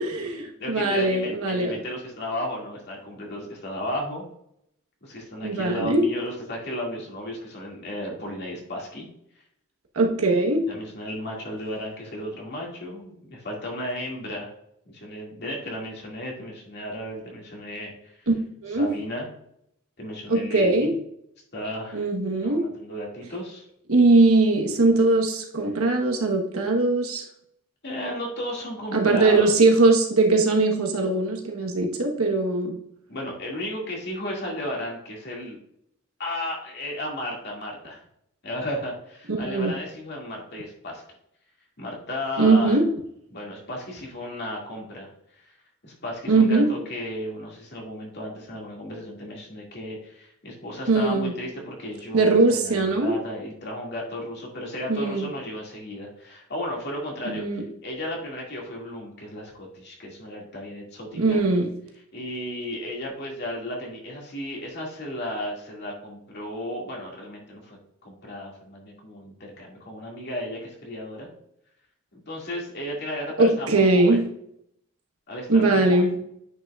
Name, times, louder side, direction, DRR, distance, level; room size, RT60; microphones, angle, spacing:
voice 1, 0.0-1.8 5.4-6.0 9.9-10.6 18.3-18.4 18.6-18.9 20.3-20.9 21.9-22.7 23.9-27.2 28.9-32.8 39.5-39.7 42.4-42.8 46.3-46.7 50.9-51.3 52.1-53.1 54.9-55.3 57.3-57.6 61.2-61.7 73.4-74.2 75.5-76.1, right 2 dB, 80° right, 1 dB, 1.3 m, -20 dB
voice 2, 0.6-4.2 5.0-9.0 10.7-14.5 14.9-18.3 18.7-19.3 20.0-20.9 21.5-22.1 22.4-23.7 27.8-29.7 33.1-35.6 36.2-38.0 38.4-41.0 41.8-42.8 43.3-45.5 45.8-61.4 62.1-71.3 72.1-74.2 75.3-76.2, left 1 dB, 50° left, -2 dB, 2.3 m, -34 dB
9.2 x 5.6 x 2.4 m, 0.72 s
head